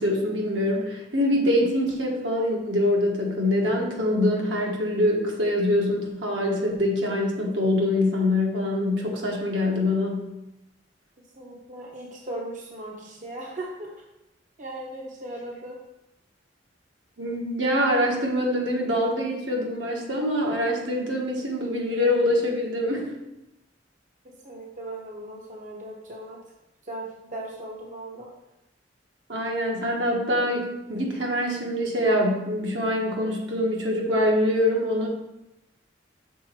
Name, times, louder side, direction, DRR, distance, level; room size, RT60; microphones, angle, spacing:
voice 1, 0.0-10.2 17.2-23.1 29.3-35.1, left 1 dB, 75° right, -1 dB, 1.4 m, -24 dB
voice 2, 11.3-13.9 14.6-15.8 24.2-26.4 26.8-28.3, right 1 dB, 45° right, -1 dB, 0.7 m, -38 dB
6.3 x 4.0 x 4.4 m, 0.91 s
head